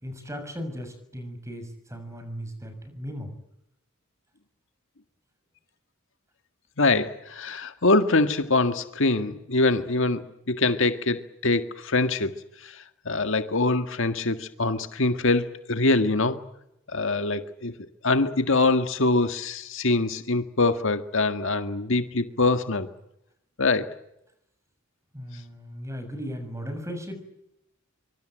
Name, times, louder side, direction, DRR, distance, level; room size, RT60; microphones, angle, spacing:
voice 1, 0.0-3.3 25.1-27.2, equal, 15° right, 8 dB, 6.8 m, -37 dB
voice 2, 6.8-12.3 12.6-16.4 16.9-17.7 18.0-22.9 23.6-23.9, left 3 dB, 65° left, 9 dB, 1.8 m, -24 dB
25.0 x 24.5 x 9.0 m, 0.82 s
head